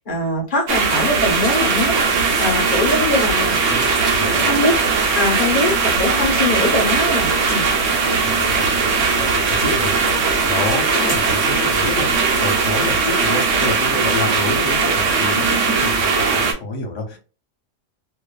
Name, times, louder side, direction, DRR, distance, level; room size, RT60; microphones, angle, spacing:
voice 1, 0.0-2.0 2.4-3.8 4.4-4.7 5.1-7.7, left 2 dB, 45° left, 0 dB, 1.0 m, -22 dB
sound 1, 0.7-16.5, right 4 dB, 85° right, 1.0 m, -19 dB
sound 2, 1.3-13.5, left 1 dB, 20° left, 0.8 m, -34 dB
voice 2, 3.7-4.5 8.2-17.2, left 3 dB, 80° left, 3 dB, 1.1 m, -28 dB
2.5 x 2.3 x 2.2 m, 0.32 s
omnidirectional pair, 1.3 m